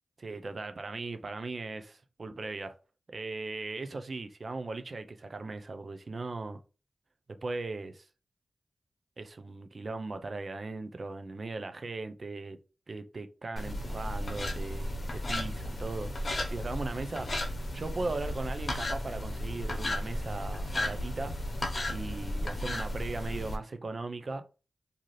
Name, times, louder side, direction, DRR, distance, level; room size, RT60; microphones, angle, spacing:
voice 1, 0.2-2.8 3.1-6.6 7.3-8.1 9.2-12.6 12.9-16.1 16.5-17.3 17.7-21.3 21.9-24.4, right 3 dB, 55° right, 0.4 m, -38 dB
sound 1, 13.6-23.6, left 1 dB, 50° left, 0.7 m, -34 dB
2.7 x 2.4 x 3.1 m
cardioid pair, 55°, 0 cm